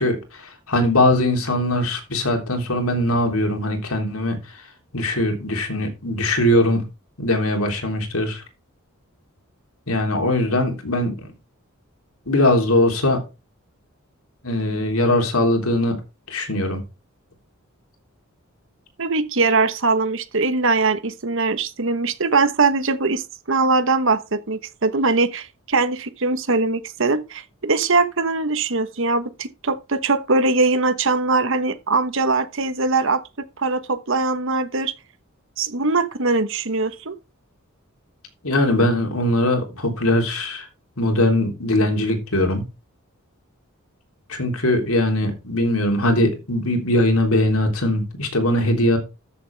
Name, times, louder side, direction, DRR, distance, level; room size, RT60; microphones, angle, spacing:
voice 1, 0.0-4.4 4.9-6.8 7.2-8.4 9.9-11.3 12.3-13.2 14.4-16.0 16.3-16.8 38.4-40.7 41.0-42.6 44.3-49.0, left 1 dB, 85° left, 3.4 m, -21 dB
voice 2, 19.0-33.2 33.6-34.9 35.6-37.1, right 3 dB, 60° right, 1.2 m, -21 dB
13.0 x 7.3 x 3.4 m
head